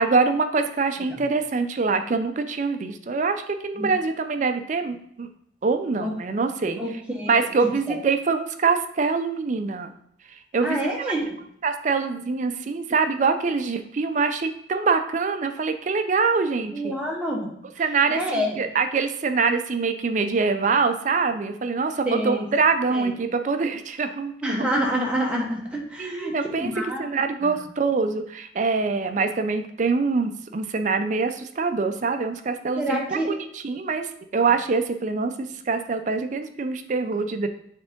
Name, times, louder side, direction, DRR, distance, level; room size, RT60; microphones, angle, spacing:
voice 1, 0.0-5.3 5.6-6.8 7.3-9.9 10.3-11.1 11.6-17.0 17.8-24.6 26.0-26.7 27.0-37.5, right 4 dB, 40° right, 8 dB, 0.4 m, -24 dB
voice 2, 10.6-11.4 16.7-17.5 18.1-18.7 22.0-22.4 22.9-23.1 24.4-27.6 32.7-33.3, equal, 5° right, -2 dB, 1.1 m, -27 dB
7.4 x 3.6 x 3.6 m, 0.70 s
head